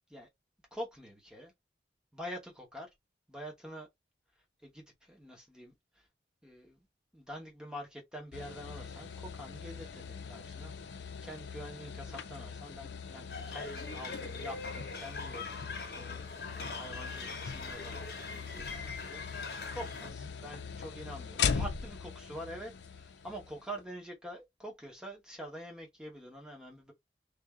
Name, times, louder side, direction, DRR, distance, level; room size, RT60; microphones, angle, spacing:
voice 1, 0.7-1.5 2.1-2.9 3.3-3.9 4.6-5.7 6.4-6.8 7.1-19.2 19.7-26.9, equal, 5° right, 1.0 m, -46 dB
sound 1, 8.3-23.8, left 6 dB, 85° left, 0.5 m, -40 dB
sound 2, 13.3-20.1, left 4 dB, 60° left, 1.0 m, -42 dB
3.4 x 2.6 x 3.6 m
head